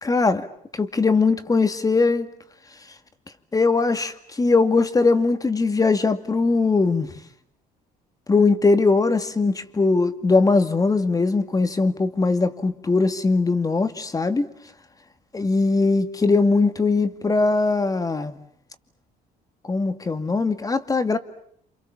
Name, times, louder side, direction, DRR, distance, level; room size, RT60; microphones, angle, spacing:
voice 1, 0.0-0.5 0.7-2.3 3.5-7.1 8.3-14.5 15.3-18.4 19.7-21.2, left 3 dB, 20° left, 2.2 m, -20 dB
28.5 x 28.0 x 7.2 m
cardioid pair, 110°, 17 cm